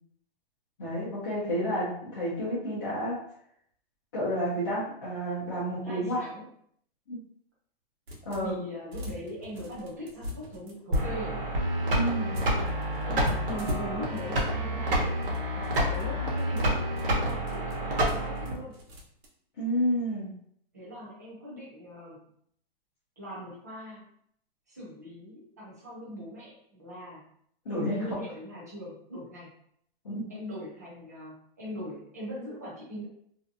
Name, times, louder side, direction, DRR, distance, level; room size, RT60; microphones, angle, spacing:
voice 1, 0.8-3.2 4.1-6.2 7.1-7.2 8.2-8.6 11.9-12.4 19.6-20.3 27.6-28.0 30.0-30.3, equal, 25° left, -11 dB, 0.6 m, -30 dB
voice 2, 5.8-6.5 8.4-11.4 13.1-18.8 20.7-22.3 23.2-24.1 24.7-27.2 27.7-29.5 30.3-33.1, equal, 20° right, -7 dB, 0.4 m, -41 dB
sound 1, 8.1-8.6 8.9-11.0 12.3-14.5 15.0-19.3, left 1 dB, 90° right, 0.9 m, -39 dB
sound 2, 10.9-18.5, right 1 dB, 65° right, 0.9 m, -28 dB
2.6 x 2.2 x 2.5 m, 0.67 s
hypercardioid pair, 180°, 30 cm